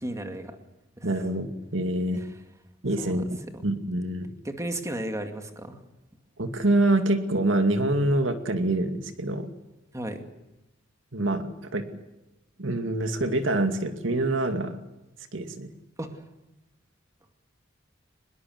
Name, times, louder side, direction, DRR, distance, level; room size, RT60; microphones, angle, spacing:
voice 1, 0.0-0.6 1.0-1.1 3.0-3.2 4.4-5.8 9.9-10.2 16.0-16.2, right 1 dB, 15° right, 5 dB, 2.2 m, -34 dB
voice 2, 1.0-2.2 2.8-3.2 3.6-4.3 6.4-9.5 11.1-11.9 12.6-14.8 15.3-15.7, right 1 dB, 70° right, 7 dB, 2.4 m, -26 dB
24.5 x 21.5 x 7.9 m, 0.98 s
head